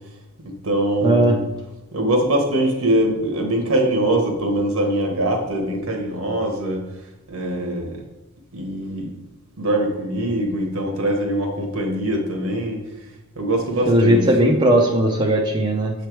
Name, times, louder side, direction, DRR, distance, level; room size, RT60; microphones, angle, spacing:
voice 1, 0.4-1.4 1.9-6.8 7.3-8.0 8.5-9.1 9.6-12.8 13.3-14.3, right 1 dB, 70° right, 2 dB, 1.2 m, -22 dB
voice 2, 1.0-1.3 13.9-15.9, right 1 dB, 20° right, -1 dB, 0.5 m, -17 dB
7.0 x 3.3 x 4.6 m, 0.98 s
head